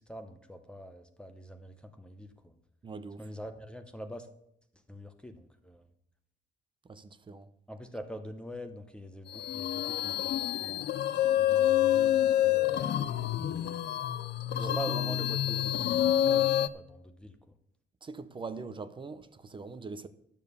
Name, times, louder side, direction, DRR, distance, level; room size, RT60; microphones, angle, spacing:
voice 1, 0.1-2.5 3.2-4.3 4.9-5.9 7.7-10.9 11.4-12.7 14.5-17.4, equal, 5° left, 0.9 m, -44 dB
voice 2, 2.8-3.2 6.8-7.5 14.6-15.1 18.0-20.1, right 4 dB, 25° right, 0.7 m, -42 dB
sound 1, 9.3-16.7, left 12 dB, 65° left, 0.6 m, -27 dB
12.0 x 7.3 x 6.7 m
cardioid pair, 155°, 19 cm